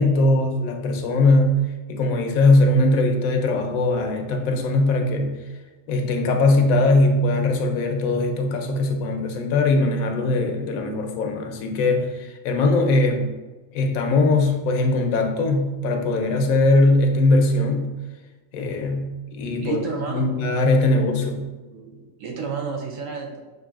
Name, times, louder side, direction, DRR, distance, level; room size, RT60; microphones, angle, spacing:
voice 1, 0.0-1.6 1.9-5.3 5.9-13.3 13.7-17.9 18.5-19.8 20.1-21.4, left 2 dB, 85° left, 4 dB, 1.0 m, -20 dB
voice 2, 19.6-20.3 20.9-21.0 21.7-23.4, right 5 dB, 70° right, 1 dB, 1.0 m, -31 dB
6.0 x 2.6 x 2.3 m, 1.2 s
omnidirectional pair, 1.4 m